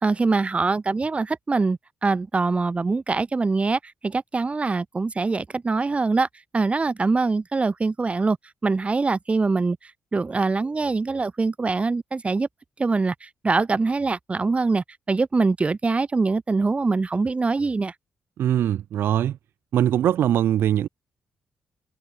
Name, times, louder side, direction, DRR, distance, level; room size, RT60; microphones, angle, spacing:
voice 1, 0.0-6.3 6.5-8.4 8.6-9.8 10.1-12.5 12.8-17.9, right 3 dB, 35° right, 1.0 m, -23 dB
voice 2, 18.4-19.4 19.7-20.9, right 11 dB, 75° right, 0.6 m, -21 dB
supercardioid pair, 55°, 4 cm